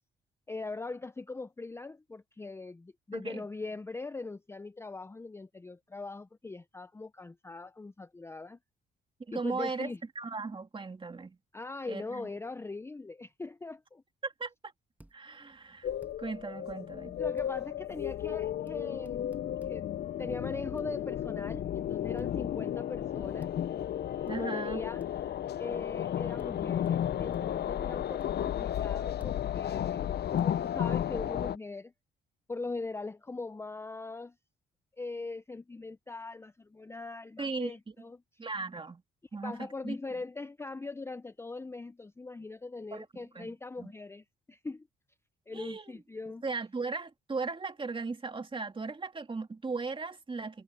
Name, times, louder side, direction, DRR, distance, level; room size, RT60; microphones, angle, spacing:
voice 1, 0.5-8.6 9.3-10.0 11.5-14.0 17.2-19.3 19.6-19.9 20.2-23.5 24.3-31.9 32.5-34.3 35.0-38.2 39.4-44.9 45.5-46.4, left 3 dB, 15° left, 0.5 m, -41 dB
voice 2, 3.1-3.5 9.3-11.4 11.9-12.3 14.2-14.5 15.1-15.9 16.2-17.2 24.3-24.8 37.4-37.8 38.4-39.0 39.3-40.0 42.9-43.9 45.5-45.9 46.4-50.6, right 4 dB, 25° right, 2.3 m, -37 dB
sound 1, 15.0-15.2 16.0-16.2 17.4-17.5 18.7-18.8 19.1-19.8 20.8-20.9 22.2-22.3 23.4-23.6 24.3-24.4 25.0-25.1 26.4-26.5 26.8-27.0 27.3-27.6 28.2-28.3 29.2-29.4 30.4-30.6, right 1 dB, 10° right, 1.6 m, -56 dB
sound 2, 15.8-31.6, left 10 dB, 55° left, 0.6 m, -33 dB
cardioid pair, 90°, 20 cm